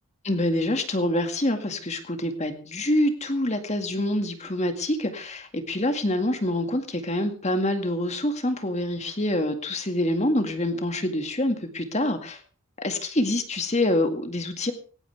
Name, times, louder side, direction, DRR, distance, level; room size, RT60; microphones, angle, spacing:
voice 1, 0.2-12.4 12.8-14.7, left 1 dB, 30° left, 7 dB, 2.0 m, -26 dB
18.5 x 17.5 x 3.5 m, 0.38 s
head